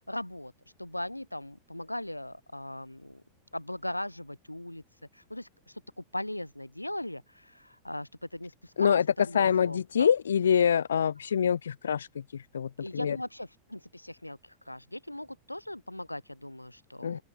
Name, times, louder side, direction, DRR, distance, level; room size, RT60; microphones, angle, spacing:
voice 1, 0.1-0.5 0.8-3.2 3.5-4.8 5.1-10.1 12.8-17.2, left 1 dB, 85° left, 4.7 m, -39 dB
voice 2, 8.8-13.2 17.0-17.2, left 7 dB, 70° left, 1.3 m, -26 dB
open air
figure-of-eight pair, 90°, 0 cm